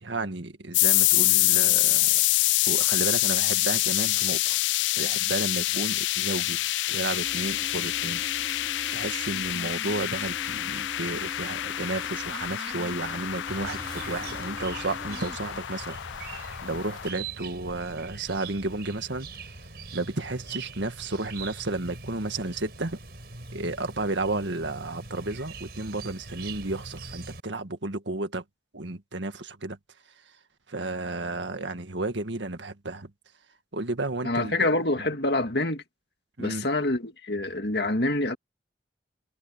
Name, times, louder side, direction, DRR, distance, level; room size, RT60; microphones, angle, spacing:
voice 1, 0.0-2.2 2.7-4.6 4.9-6.6 6.9-8.2 8.9-19.3 19.9-23.0 23.5-28.4 28.7-29.8 30.7-33.1 33.7-34.7 36.4-36.7, right 2 dB, 80° right, 1.9 m, -32 dB
sound 1, 0.7-17.1, left 17 dB, 80° left, 0.3 m, -26 dB
sound 2, 7.2-15.4, equal, 20° left, 3.2 m, -43 dB
Chirp tweet, 13.5-27.4, right 4 dB, 55° right, 5.7 m, -42 dB
voice 2, 34.2-35.8 36.4-38.4, left 2 dB, 60° left, 2.1 m, -26 dB
head